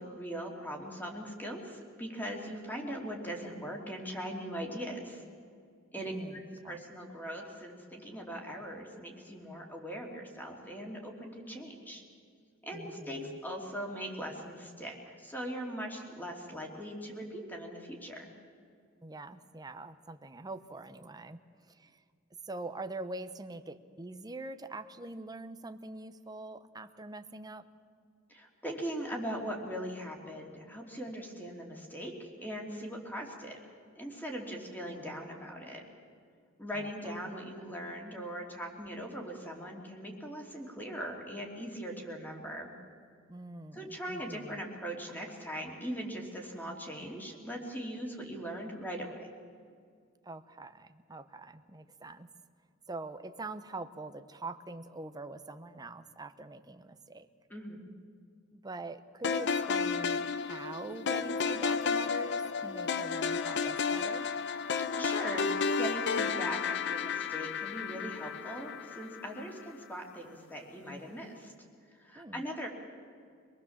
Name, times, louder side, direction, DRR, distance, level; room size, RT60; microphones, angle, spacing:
voice 1, 0.0-5.2 5.9-12.0 12.6-18.3 28.3-33.6 34.0-35.8 36.6-42.7 43.7-49.3 57.5-57.8 64.9-71.5 71.9-72.7, equal, 10° left, 1 dB, 3.0 m, -40 dB
voice 2, 6.0-6.8 12.7-13.4 19.0-21.4 21.7-22.0 22.5-27.7 36.7-37.1 43.3-44.6 50.2-52.3 52.9-57.3 58.5-64.3 72.1-72.4, right 2 dB, 20° right, 9 dB, 0.9 m, -44 dB
sound 1, 59.2-69.5, left 5 dB, 60° left, 0.7 m, -32 dB
25.5 x 20.0 x 7.3 m, 2.2 s
head